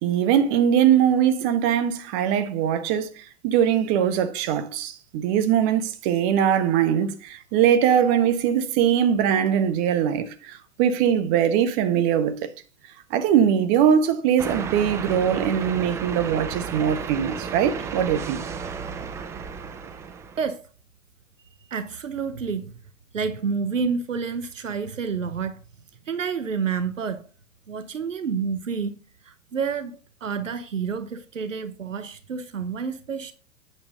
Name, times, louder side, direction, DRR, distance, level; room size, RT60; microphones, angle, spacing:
voice 1, 0.0-12.5 13.1-18.4, right 9 dB, 40° right, 1.3 m, -21 dB
sound 1, 14.4-20.5, right 6 dB, 10° right, 0.3 m, -33 dB
voice 2, 20.4-20.7 21.7-22.7 23.1-25.6 26.1-27.3 27.7-33.3, right 5 dB, 80° right, 0.9 m, -29 dB
9.0 x 7.1 x 3.9 m
figure-of-eight pair, 100°, 38 cm